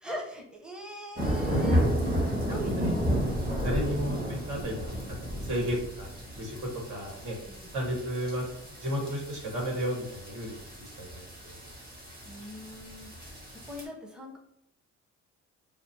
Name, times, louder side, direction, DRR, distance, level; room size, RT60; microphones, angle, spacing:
voice 1, 0.0-3.7 7.5-7.7 12.2-14.4, equal, 5° right, 0 dB, 0.8 m, -41 dB
sound 1, 1.2-13.8, equal, 30° right, 1.4 m, -32 dB
voice 2, 2.5-3.3 3.6-6.1 6.4-7.4 7.7-8.4 8.8-11.6, equal, 70° right, 0 dB, 1.4 m, -34 dB
5.6 x 2.1 x 2.7 m, 0.75 s
cardioid pair, 90°, 30 cm